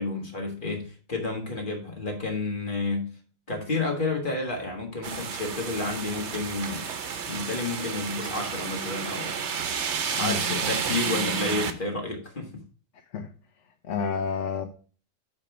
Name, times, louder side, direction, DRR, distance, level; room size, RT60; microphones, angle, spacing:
voice 1, 0.0-3.1 3.5-6.9 7.3-9.4 10.1-12.6, left 3 dB, 40° left, 1.7 m, -31 dB
sound 1, 5.0-11.7, right 6 dB, 60° right, 1.1 m, -31 dB
voice 2, 10.2-10.6 13.1-13.3 13.8-14.7, left 6 dB, 70° left, 1.1 m, -29 dB
8.7 x 3.5 x 5.8 m
omnidirectional pair, 1.3 m